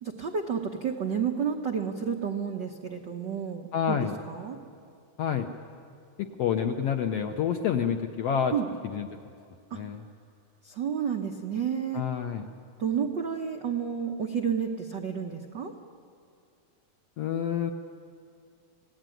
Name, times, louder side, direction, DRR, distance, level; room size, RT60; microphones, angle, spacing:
voice 1, 0.0-4.6 8.5-8.7 9.7-9.8 10.6-12.0 12.8-15.7, right 7 dB, 85° right, 3 dB, 0.9 m, -31 dB
voice 2, 3.7-4.2 5.2-5.5 6.2-8.5 8.8-9.1 9.7-10.0 11.9-12.5 17.2-17.7, left 8 dB, 70° left, 5 dB, 1.5 m, -28 dB
28.5 x 17.5 x 9.2 m, 2.4 s
omnidirectional pair, 3.8 m